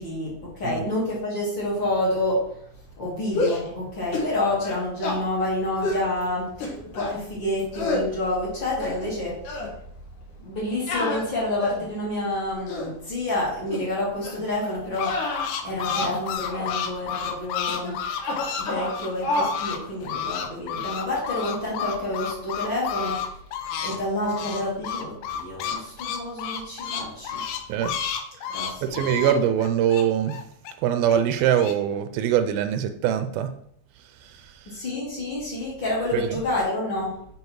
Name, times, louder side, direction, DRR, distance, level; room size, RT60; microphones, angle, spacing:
voice 1, 0.0-2.5 3.0-9.5 10.4-15.2 15.6-18.0 18.6-23.3 23.8-27.4 28.5-29.0 34.7-37.2, left 1 dB, 30° left, -7 dB, 3.1 m, -28 dB
sound 1, 3.3-3.7 4.1-4.3 4.6-5.2 5.8-6.1 6.6-7.2 7.7-8.1 8.6-9.2 9.5-9.7 10.9-11.9 12.5-12.9 13.7-13.9 14.2-14.5 15.0-16.2 16.5-16.7 17.7-17.9 18.2-19.0 19.2-19.6, left 2 dB, 65° left, 2.9 m, -29 dB
sound 2, 14.6-19.8 20.0-24.0 24.2-30.7 31.1-31.7, left 8 dB, 85° left, 2.5 m, -31 dB
voice 2, 28.8-30.4 30.8-33.5 36.1-36.3, right 9 dB, 85° right, 9 dB, 2.4 m, -23 dB
8.0 x 4.9 x 4.7 m, 0.69 s
omnidirectional pair, 4.3 m